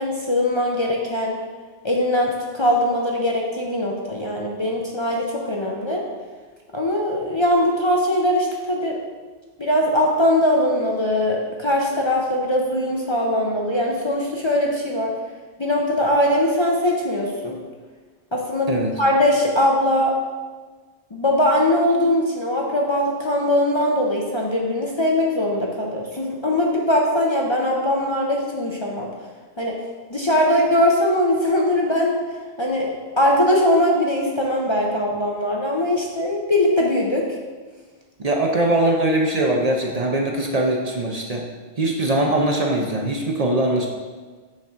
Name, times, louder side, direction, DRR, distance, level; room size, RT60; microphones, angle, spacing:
voice 1, 0.0-1.4 1.8-6.0 6.7-9.0 9.6-15.1 15.6-17.6 18.3-18.7 19.0-20.1 21.1-29.1 29.6-29.7 30.1-32.1 32.6-32.9 33.2-37.2, left 1 dB, 35° left, -2 dB, 0.6 m, -21 dB
voice 2, 38.2-41.5 41.8-43.9, right 1 dB, 45° right, 0 dB, 0.7 m, -21 dB
6.5 x 5.9 x 3.5 m, 1.4 s
omnidirectional pair, 1.0 m